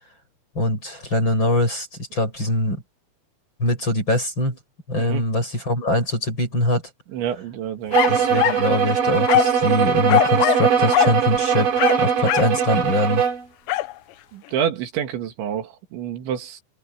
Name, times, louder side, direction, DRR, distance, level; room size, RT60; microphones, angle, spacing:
voice 1, 0.5-2.8 3.6-4.6 4.9-6.8 8.1-13.2, left 1 dB, 25° left, 8.4 m, -23 dB
voice 2, 7.1-8.2 14.3-16.6, right 9 dB, 85° right, 4.6 m, -28 dB
sound 1, 7.9-8.7 9.3-9.6 10.1-10.7 10.9-11.2 11.8-12.6 13.7-13.9, left 17 dB, 85° left, 3.1 m, -21 dB
sound 2, 7.9-13.4, right 7 dB, 50° right, 4.6 m, -20 dB
omnidirectional pair, 5.1 m